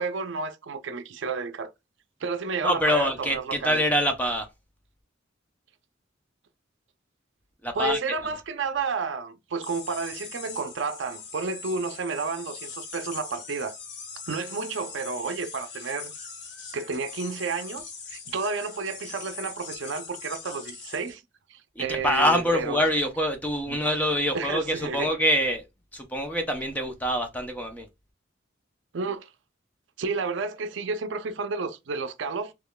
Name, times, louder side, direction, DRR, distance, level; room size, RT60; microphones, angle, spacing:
voice 1, 0.0-1.7 2.2-3.8 7.7-13.8 14.3-16.1 16.7-21.2 21.5-22.8 23.7-23.8 24.3-25.1 28.9-29.3 30.0-32.5, right 4 dB, 75° right, 0.5 m, -31 dB
voice 2, 2.6-4.5 7.6-8.0 21.8-25.6 25.9-27.9, equal, 10° left, 0.6 m, -25 dB
sound 1, 9.6-21.1, left 5 dB, 60° left, 0.8 m, -41 dB
3.7 x 3.0 x 2.2 m
head